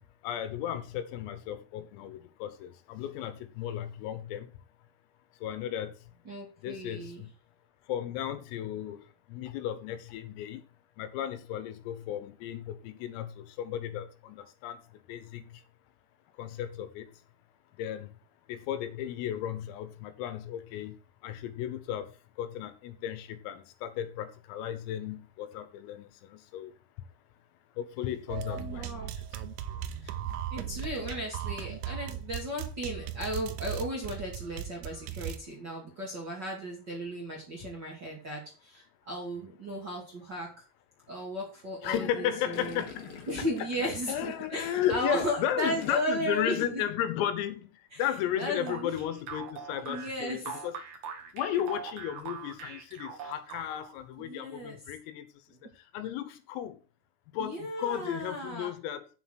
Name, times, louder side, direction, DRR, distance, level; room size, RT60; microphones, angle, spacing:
voice 1, 0.2-4.5 5.4-5.9 6.6-7.3 7.9-9.0 9.3-10.6 11.0-14.8 15.1-15.6 16.4-17.1 17.8-18.1 18.5-21.0 21.2-22.1 22.4-26.7 27.8-29.4 39.4-39.5 41.8-43.1 44.1-50.7 51.3-55.3 55.9-56.8 57.3-59.1, left 10 dB, 85° left, 3.9 m, -34 dB
voice 2, 6.2-7.2 28.5-29.1 30.0-30.2 30.5-40.5 41.1-42.8 43.3-46.8 47.9-48.0 48.4-49.0 49.8-50.6 54.2-54.8 57.4-58.7, equal, 30° right, 2.2 m, -35 dB
sound 1, 28.3-35.4, right 10 dB, 80° right, 3.4 m, -37 dB
Gurgling, 42.5-46.3 46.6-47.0, left 5 dB, 55° left, 3.6 m, -47 dB
sound 2, 48.7-54.0, right 6 dB, 60° right, 2.1 m, -42 dB
8.2 x 7.9 x 6.5 m
omnidirectional pair, 5.9 m